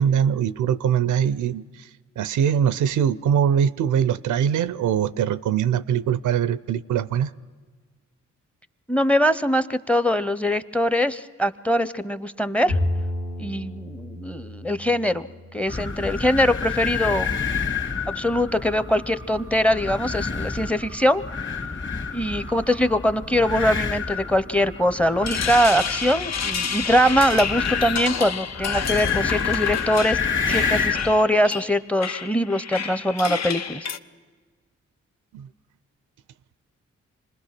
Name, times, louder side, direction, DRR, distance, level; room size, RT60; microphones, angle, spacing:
voice 1, 0.0-1.6 2.2-7.3 35.3-35.5, right 8 dB, 75° right, 0.5 m, -22 dB
voice 2, 8.9-12.8 13.4-17.3 18.2-21.2 22.1-33.9, equal, 5° left, 0.7 m, -22 dB
Bowed string instrument, 12.7-16.1, left 1 dB, 80° left, 2.0 m, -30 dB
sound 1, 15.7-31.2, left 5 dB, 40° left, 2.1 m, -29 dB
sound 2, 25.0-34.0, left 6 dB, 60° left, 0.7 m, -30 dB
26.0 x 20.0 x 6.0 m
supercardioid pair, 40°, 31 cm